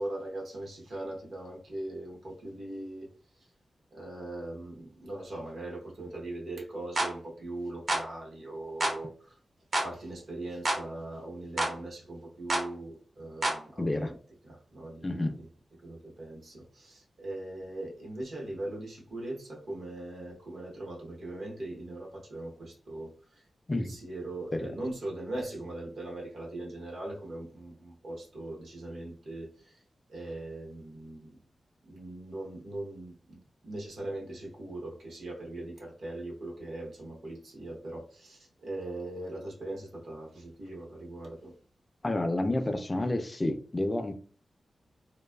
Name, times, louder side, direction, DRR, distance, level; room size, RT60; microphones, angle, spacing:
voice 1, 0.0-3.1 3.9-9.3 9.8-14.2 14.4-15.5 15.8-23.1 23.7-29.8 30.1-31.4 31.8-41.5, right 2 dB, 75° right, 0.9 m, -40 dB
sound 1, 7.0-7.1 7.9-8.1 8.8-9.0 9.7-9.9 10.7-10.8 11.6-11.8 12.5-12.7 13.4-13.6, right 1 dB, 50° right, 0.6 m, -28 dB
voice 2, 13.8-14.1 15.0-15.4 23.7-23.9 24.5-24.7 42.0-44.1, left 1 dB, 25° left, 0.3 m, -30 dB
2.6 x 2.2 x 2.2 m
wide cardioid pair, 100°, 0 cm